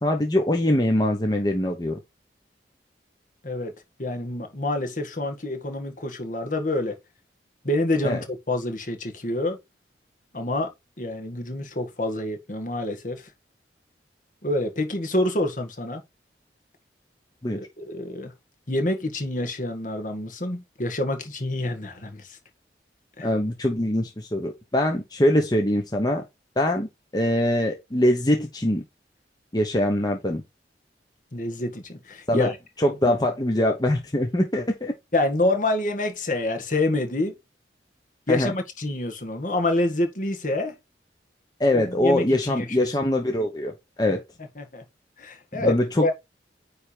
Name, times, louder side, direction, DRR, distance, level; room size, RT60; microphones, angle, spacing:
voice 1, 0.0-2.0 8.0-8.2 17.4-17.6 23.2-26.2 26.6-26.9 27.1-28.8 29.5-30.4 32.3-32.5 32.8-34.9 38.3-38.5 41.6-43.7 44.0-44.2 45.5-46.1, left 1 dB, 25° left, 1.0 m, -23 dB
voice 2, 4.0-7.0 7.6-9.6 10.3-10.7 11.0-13.3 14.4-16.0 17.5-18.3 18.7-22.4 23.2-23.3 31.3-32.6 35.1-37.4 38.3-40.8 41.7-42.9 44.6-44.8 45.2-46.1, left 2 dB, 50° left, 1.8 m, -27 dB
9.5 x 3.5 x 4.6 m
head